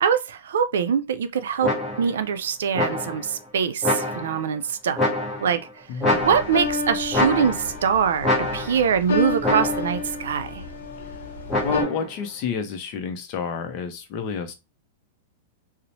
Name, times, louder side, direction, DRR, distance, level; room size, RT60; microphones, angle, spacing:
voice 1, 0.0-1.7 2.0-5.1 5.4-5.6 6.2-10.6, right 7 dB, 85° right, 0.4 m, -23 dB
sound 1, 1.6-2.2 2.8-3.3 3.8-4.5 5.0-5.6 6.0-6.8 7.1-7.8 8.2-8.9 9.4-10.0 11.5-12.1, left 2 dB, 5° left, 0.9 m, -26 dB
voice 2, 5.9-6.2 11.6-14.5, left 6 dB, 40° left, 0.5 m, -29 dB
sound 2, 6.1-11.8, left 3 dB, 85° left, 0.7 m, -30 dB
2.9 x 2.0 x 2.7 m
supercardioid pair, 160°, 0 cm